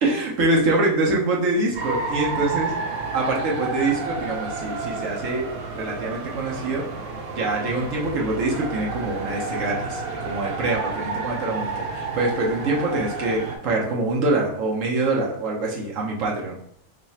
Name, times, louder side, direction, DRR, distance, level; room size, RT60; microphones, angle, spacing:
voice 1, 0.0-2.7 3.1-5.5 5.7-6.9 7.3-16.6, right 2 dB, 70° right, -2 dB, 1.0 m, -24 dB
sound 1, 1.7-13.6, right 4 dB, 90° right, 1.1 m, -31 dB
3.1 x 2.4 x 4.1 m, 0.68 s
omnidirectional pair, 1.5 m